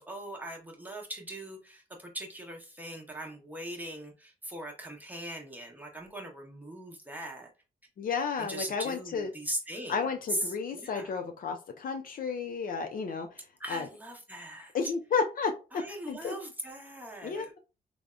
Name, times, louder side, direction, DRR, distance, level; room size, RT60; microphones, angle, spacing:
voice 1, 0.0-7.5 8.4-11.1 13.6-14.7 15.7-17.5, right 1 dB, 10° right, 0.9 m, -40 dB
voice 2, 8.0-9.3 9.9-13.3 13.7-13.9 14.7-16.3 17.2-17.5, left 5 dB, 55° left, 0.5 m, -32 dB
3.4 x 2.1 x 2.4 m
cardioid pair, 65°, 17 cm